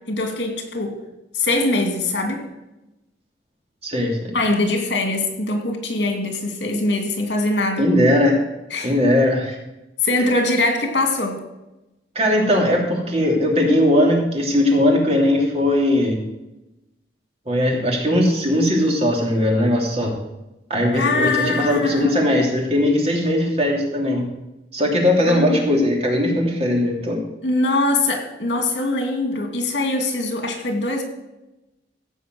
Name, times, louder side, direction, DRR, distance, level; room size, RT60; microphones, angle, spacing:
voice 1, 0.1-1.0 1.3-2.5 4.3-7.9 8.7-8.9 10.0-11.4 20.9-22.3 25.3-25.6 27.4-31.0, left 2 dB, 80° left, 4 dB, 2.5 m, -22 dB
voice 2, 3.8-4.4 7.8-8.3 8.8-9.6 12.1-16.2 17.5-20.2 20.7-24.2 24.7-27.2, left 1 dB, 35° right, -1 dB, 2.9 m, -19 dB
15.0 x 5.5 x 7.8 m, 0.96 s
head